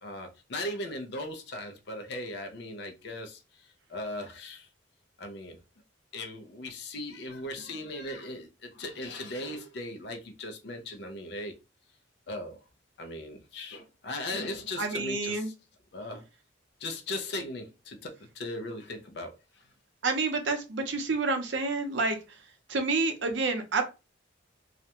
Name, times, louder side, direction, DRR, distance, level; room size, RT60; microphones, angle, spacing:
voice 1, 0.0-4.7 5.2-5.6 6.1-11.6 12.3-12.6 13.0-15.5 15.9-16.2 16.8-19.3, left 1 dB, 60° left, 0.5 m, -38 dB
voice 2, 14.8-15.5 20.0-22.2 22.7-23.8, right 3 dB, 70° right, 0.6 m, -28 dB
2.4 x 2.1 x 2.8 m
head